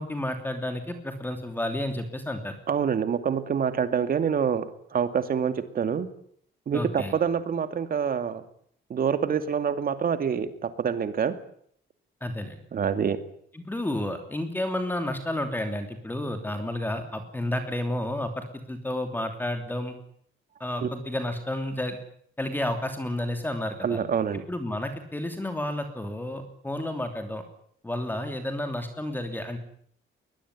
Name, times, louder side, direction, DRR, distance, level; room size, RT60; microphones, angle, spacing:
voice 1, 0.0-2.5 6.7-7.1 12.2-12.6 13.5-20.0 20.6-22.0 22.4-24.0 24.5-27.4 27.8-29.6, left 1 dB, 10° left, 6 dB, 3.0 m, -31 dB
voice 2, 2.7-6.1 6.7-8.4 8.9-11.3 12.7-13.2 20.8-20.9 23.8-24.4, right 7 dB, 45° right, 10 dB, 2.5 m, -26 dB
21.5 x 21.0 x 9.8 m, 0.64 s
cardioid pair, 155°, 21 cm